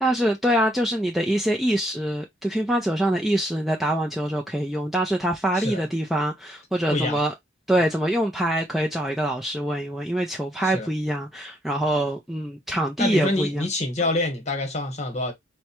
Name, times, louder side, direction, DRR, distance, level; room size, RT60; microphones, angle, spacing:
voice 1, 0.0-7.3 7.7-13.6 14.0-14.1, right 1 dB, ahead, 0.4 m, -24 dB
voice 2, 13.0-15.3, left 2 dB, 35° left, 1.1 m, -26 dB
4.6 x 2.1 x 2.9 m
head